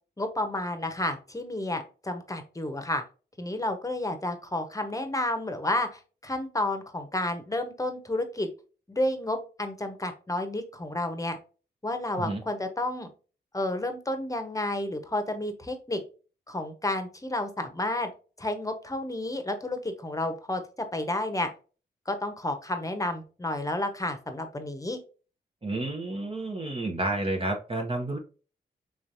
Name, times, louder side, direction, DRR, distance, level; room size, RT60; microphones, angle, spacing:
voice 1, 0.2-3.0 3.4-8.5 8.9-11.4 11.8-13.1 13.5-16.0 16.5-18.1 18.4-21.5 22.1-25.0, left 1 dB, 15° left, 7 dB, 1.0 m, -31 dB
voice 2, 25.6-28.2, right 2 dB, 30° right, 1 dB, 0.9 m, -30 dB
3.6 x 3.1 x 2.6 m, 0.35 s
supercardioid pair, 45°, 19 cm